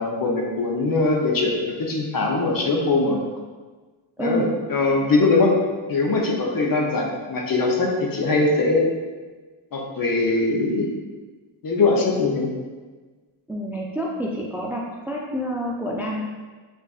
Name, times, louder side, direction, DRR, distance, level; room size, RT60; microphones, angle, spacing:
voice 1, 0.0-1.5 1.8-3.2 4.2-5.5 5.9-8.9 9.7-10.9 11.6-12.5, left 3 dB, 45° left, 0 dB, 0.7 m, -21 dB
voice 2, 4.2-4.5 13.5-16.3, equal, 5° right, -2 dB, 0.3 m, -28 dB
5.0 x 2.5 x 2.4 m, 1.3 s
cardioid pair, 80°, 48 cm